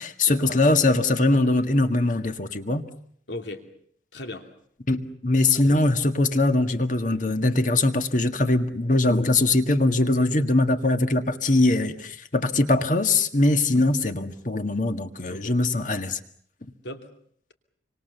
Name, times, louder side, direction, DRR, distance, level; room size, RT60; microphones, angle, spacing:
voice 1, 0.0-2.8 4.9-16.2, left 2 dB, 45° left, 1.8 m, -22 dB
voice 2, 3.3-3.7 4.1-4.5 5.5-5.9 15.3-15.6 16.8-17.1, left 1 dB, 85° left, 2.8 m, -37 dB
27.0 x 25.5 x 6.9 m
head